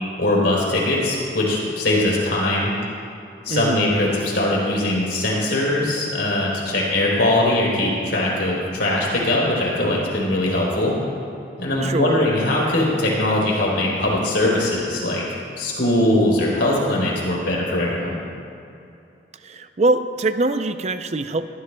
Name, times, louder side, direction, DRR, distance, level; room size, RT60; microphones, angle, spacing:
voice 1, 0.2-2.7 3.4-10.9 11.6-15.2 15.6-18.2, left 1 dB, 65° left, -4 dB, 3.5 m, -21 dB
voice 2, 3.5-4.0 11.8-12.3 19.4-21.5, right 2 dB, 35° right, 10 dB, 0.5 m, -23 dB
20.0 x 14.0 x 2.2 m, 2.6 s
head